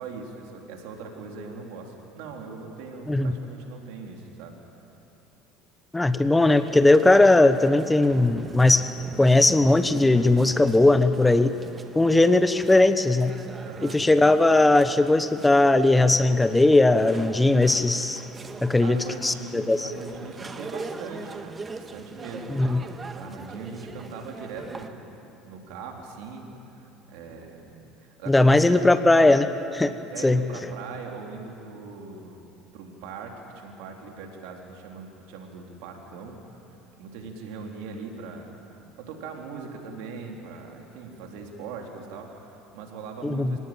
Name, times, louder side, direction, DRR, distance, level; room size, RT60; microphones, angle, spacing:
voice 1, 0.0-4.6 13.6-14.0 17.7-17.8 18.8-25.1 25.4-28.8 29.8-32.5 32.7-36.4 37.0-38.5 39.0-43.6, right 4 dB, 75° right, 1 dB, 3.7 m, -40 dB
voice 2, 5.9-8.9 9.2-11.5 11.9-13.3 13.9-18.2 18.6-19.9 22.5-22.8 28.3-29.9 30.2-30.4 43.2-43.6, left 2 dB, 10° left, 11 dB, 1.1 m, -19 dB
sound 1, 6.5-24.9, right 3 dB, 25° right, 1.6 m, -41 dB
25.5 x 18.5 x 9.0 m, 2.8 s
supercardioid pair, 90°, 0 cm